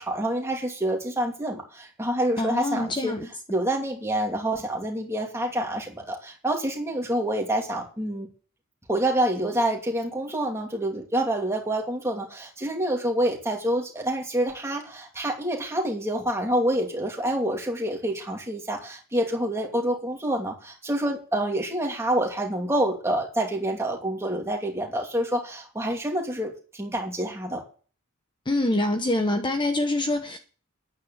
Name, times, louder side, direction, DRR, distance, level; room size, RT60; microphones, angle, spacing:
voice 1, 0.0-3.2 3.5-8.3 8.9-27.6, right 1 dB, 15° right, 2.7 m, -27 dB
voice 2, 2.4-3.3 28.5-30.4, left 1 dB, 20° left, 1.0 m, -25 dB
10.0 x 9.0 x 7.3 m
head